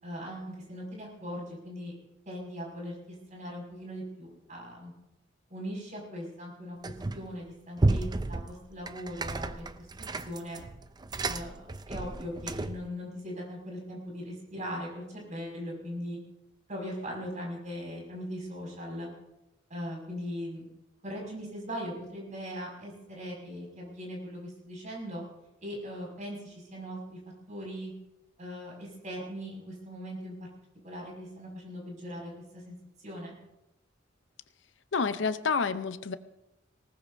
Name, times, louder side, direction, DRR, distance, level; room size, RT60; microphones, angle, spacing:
voice 1, 0.0-1.9 2.3-4.9 5.5-10.6 11.3-16.2 16.7-19.1 19.7-20.6 21.0-25.2 25.6-27.2 27.5-27.9 28.4-30.4 30.8-32.8 33.0-33.3, equal, 40° right, 5.8 m, -40 dB
sound 1, 6.8-7.4 7.8-12.9, right 2 dB, 20° right, 0.5 m, -32 dB
voice 2, 34.9-36.1, left 5 dB, 70° left, 0.7 m, -29 dB
19.0 x 18.5 x 2.7 m
head